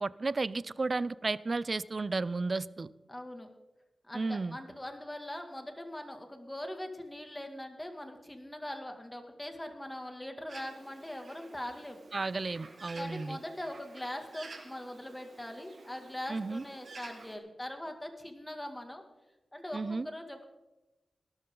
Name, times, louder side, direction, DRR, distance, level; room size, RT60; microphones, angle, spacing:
voice 1, 0.0-2.9 4.1-4.6 12.1-13.4 16.3-16.6 19.7-20.1, right 3 dB, 45° right, 18 dB, 0.5 m, -33 dB
voice 2, 3.1-3.5 4.0-12.0 13.0-19.0 19.5-20.5, left 1 dB, 15° left, 5 dB, 2.3 m, -41 dB
Bird, 10.5-17.4, right 3 dB, 65° right, 2.2 m, -51 dB
18.5 x 12.5 x 3.9 m, 1.0 s
wide cardioid pair, 75°, 0 cm